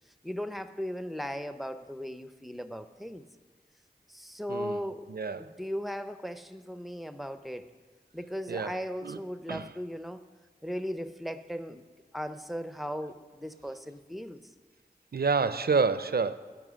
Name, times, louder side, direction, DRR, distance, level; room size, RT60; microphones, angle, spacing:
voice 1, 0.2-3.2 4.1-7.7 8.1-10.2 10.6-11.9 12.1-14.4, equal, ahead, 11 dB, 0.5 m, -37 dB
voice 2, 4.5-4.8 5.1-5.5 8.5-8.7 9.0-9.2 9.5-9.7 15.1-16.4, right 4 dB, 70° right, 13 dB, 0.4 m, -28 dB
12.5 x 5.4 x 6.3 m, 1.4 s
wide cardioid pair, 45°, 16 cm